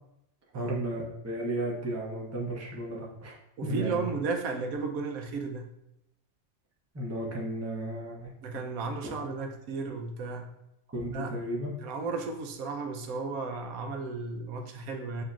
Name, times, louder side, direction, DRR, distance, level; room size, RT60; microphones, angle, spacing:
voice 1, 0.5-4.1 6.9-8.3 9.0-9.1 10.9-11.7, right 1 dB, 15° right, -4 dB, 0.6 m, -34 dB
voice 2, 3.6-5.7 8.4-10.6 11.1-11.3 11.8-15.2, right 4 dB, 90° right, 4 dB, 1.1 m, -34 dB
7.5 x 2.7 x 2.4 m, 0.84 s
omnidirectional pair, 1.4 m